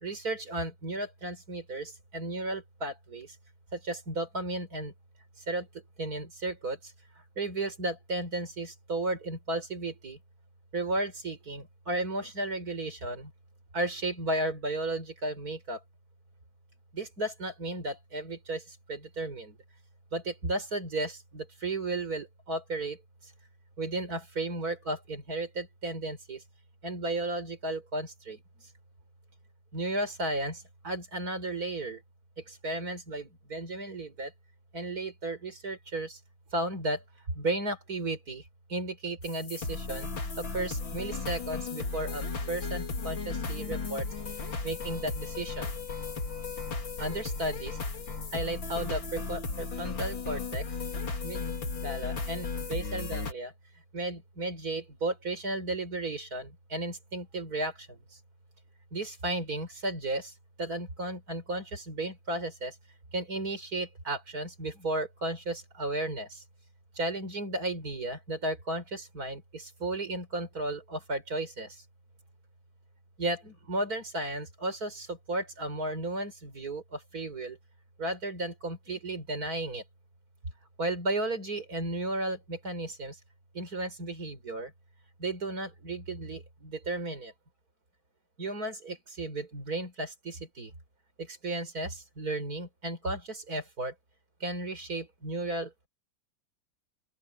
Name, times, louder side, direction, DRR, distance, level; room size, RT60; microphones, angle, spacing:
voice 1, 0.0-3.3 3.8-4.9 5.5-5.7 6.0-6.8 7.4-10.2 10.7-13.3 13.7-15.8 16.9-18.6 18.9-19.5 20.1-23.0 23.8-26.4 26.8-28.4 29.7-32.0 32.6-34.3 34.7-36.2 36.5-37.0 37.4-38.4 38.7-40.1 40.4-44.1 44.6-45.7 47.0-47.7 48.3-50.6 51.2-51.5 51.8-53.5 53.9-57.7 58.9-60.3 60.6-62.7 63.1-66.3 67.0-71.7 73.2-77.6 78.0-79.8 80.8-83.1 83.6-84.7 85.2-87.3 88.4-90.7 91.4-93.9 94.4-95.9, right 2 dB, 50° right, 5.6 m, -34 dB
sound 1, 39.2-53.3, left 4 dB, 90° left, 3.8 m, -35 dB
open air
omnidirectional pair, 2.0 m